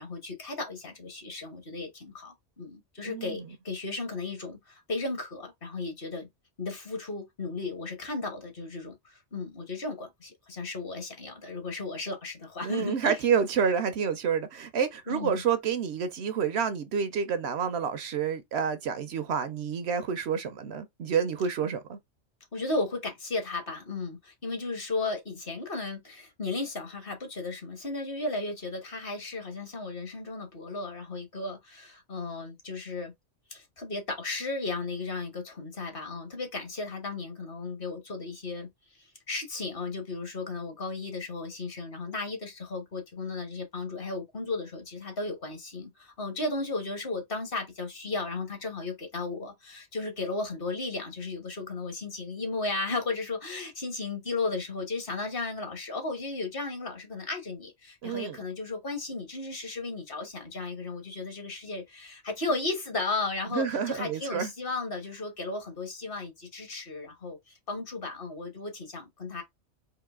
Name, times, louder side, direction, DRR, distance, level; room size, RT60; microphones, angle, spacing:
voice 1, 0.0-6.3 6.6-13.2 15.1-15.4 22.5-33.1 33.5-38.7 39.0-69.4, left 3 dB, 50° left, 1.4 m, -35 dB
voice 2, 3.0-3.5 12.6-22.0 58.0-58.4 63.5-64.5, right 7 dB, 65° right, 0.8 m, -29 dB
3.8 x 2.7 x 3.5 m
omnidirectional pair, 1.2 m